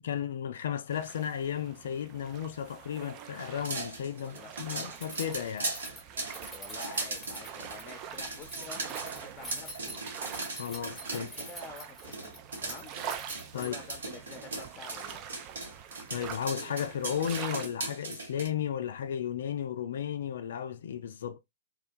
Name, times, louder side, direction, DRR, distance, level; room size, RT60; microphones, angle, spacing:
voice 1, 0.0-5.7 10.5-11.3 13.5-13.7 16.1-21.4, left 9 dB, 65° left, 0.3 m, -34 dB
sound 1, 0.9-17.7, right 9 dB, 35° right, 0.3 m, -45 dB
sound 2, 3.4-11.7 12.0-18.5, right 2 dB, 75° right, 0.9 m, -39 dB
voice 2, 4.1-4.5 6.5-10.0 11.1-12.9 13.5-15.2, left 4 dB, 20° left, 0.7 m, -48 dB
Keys jangling, 5.0-14.0, right 1 dB, 5° left, 1.0 m, -46 dB
2.2 x 2.2 x 2.5 m
figure-of-eight pair, 115°, 0 cm